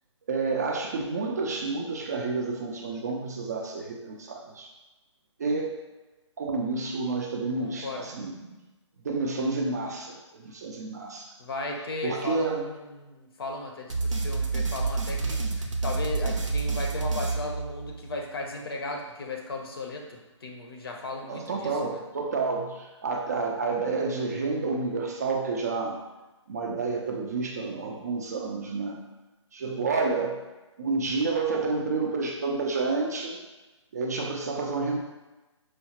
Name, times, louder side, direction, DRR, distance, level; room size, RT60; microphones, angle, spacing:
voice 1, 0.3-4.7 5.4-5.8 6.4-8.6 9.0-11.3 12.0-12.7 21.3-26.0 26.5-29.0 29.5-30.5 30.8-33.4 33.9-35.0, right 4 dB, 35° right, 0 dB, 0.4 m, -29 dB
voice 2, 7.6-8.0 11.4-22.0, left 2 dB, 50° left, 1 dB, 0.6 m, -36 dB
sound 1, 13.9-18.2, right 3 dB, 80° right, 0.6 m, -29 dB
4.7 x 2.0 x 2.8 m, 1.1 s
figure-of-eight pair, 150°, 16 cm